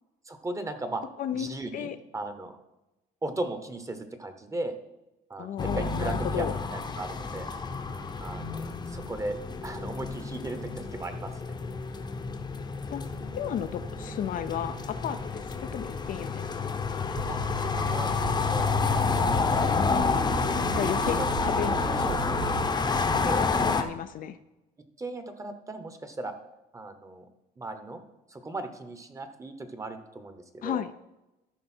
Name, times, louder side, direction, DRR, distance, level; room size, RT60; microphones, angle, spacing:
voice 1, 0.2-1.0 1.3-2.5 3.2-4.8 5.3-7.5 8.2-9.4 9.6-11.5 17.3-18.8 19.5-19.9 21.0-21.3 22.0-22.2 23.2-23.6 25.0-26.3 26.7-27.3 27.6-28.0 28.3-30.8, right 2 dB, 20° right, 8 dB, 1.1 m, -37 dB
voice 2, 1.2-2.0 5.4-6.6 12.9-13.0 13.3-16.8 19.8-20.2 20.7-21.8 23.1-24.4 30.6-30.9, left 9 dB, 55° left, 10 dB, 0.5 m, -34 dB
sound 1, 5.6-23.8, left 4 dB, 25° left, 0.8 m, -29 dB
sound 2, 17.2-22.7, right 14 dB, 80° right, 0.5 m, -37 dB
13.5 x 5.3 x 4.4 m, 0.97 s
cardioid pair, 110°, 17 cm